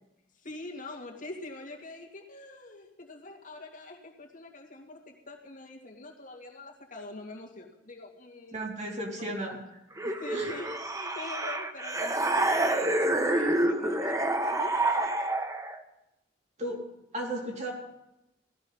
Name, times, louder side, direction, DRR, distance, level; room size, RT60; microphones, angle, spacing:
voice 1, 0.4-8.7 9.1-9.3 10.0-14.9, left 2 dB, 45° left, 1 dB, 2.3 m, -44 dB
voice 2, 8.5-9.6 10.3-10.5 16.6-16.8 17.1-17.7, right 1 dB, 40° right, -1 dB, 3.4 m, -34 dB
sound 1, 10.0-15.8, right 1 dB, 20° right, 1.0 m, -28 dB
18.0 x 13.5 x 5.5 m, 0.91 s
head